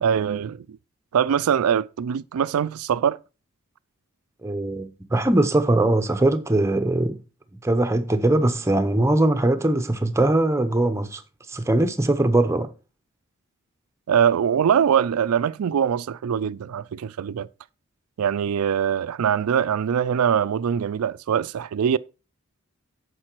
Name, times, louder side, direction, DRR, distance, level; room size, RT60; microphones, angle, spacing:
voice 1, 0.0-0.7 1.1-3.2 14.1-17.5 18.2-22.0, right 8 dB, 80° right, 0.4 m, -22 dB
voice 2, 4.4-7.2 7.6-11.2 11.5-12.7, right 1 dB, 10° right, 0.7 m, -21 dB
8.8 x 6.7 x 4.5 m
head